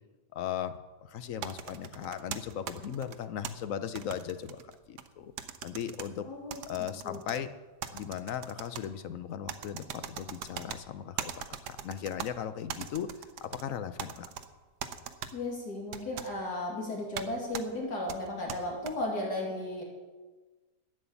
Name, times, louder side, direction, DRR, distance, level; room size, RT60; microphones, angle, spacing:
voice 1, 0.3-4.6 4.9-5.3 5.6-6.3 6.7-7.5 7.9-13.1 13.4-14.3, left 9 dB, 65° left, 11 dB, 1.0 m, -37 dB
sound 1, 1.4-3.5 4.0-5.1 5.4-6.1 6.5-7.4 7.8-8.9 9.5-10.8 11.2-12.3 12.7-13.6 14.0-14.5 14.8-15.3 15.9-16.3 17.2-17.3 17.5-17.7 18.1-18.9, right 9 dB, 85° right, 1.3 m, -40 dB
voice 2, 6.2-6.6 7.0-7.2 15.3-19.8, left 1 dB, 80° left, -2 dB, 3.0 m, -35 dB
12.5 x 8.8 x 7.0 m, 1.3 s
omnidirectional pair, 1.7 m